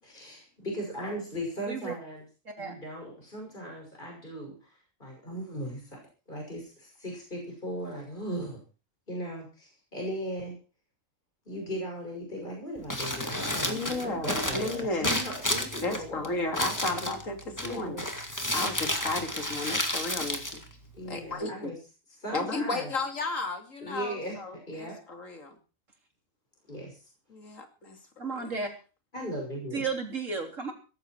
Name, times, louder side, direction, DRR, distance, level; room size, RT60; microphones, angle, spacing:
voice 1, 0.0-2.2 2.6-8.6 9.1-10.6 11.5-17.1 17.7-18.1 20.9-21.8 22.2-22.9 23.8-25.0 26.7-27.0 29.1-29.9, equal, 35° left, 0 dB, 6.3 m, -38 dB
Crumpling crinkling, 12.8-21.3, left 1 dB, 15° left, 2.3 m, -32 dB
voice 2, 13.7-15.1 15.8-18.0 18.5-20.6 21.0-21.7 22.3-25.5 27.3-28.0 28.4-28.6, left 2 dB, 70° left, 5 dB, 3.1 m, -33 dB
voice 3, 28.2-28.7 29.7-30.7, right 4 dB, 70° right, 3 dB, 3.9 m, -33 dB
16.5 x 14.5 x 4.6 m, 0.35 s
omnidirectional pair, 1.4 m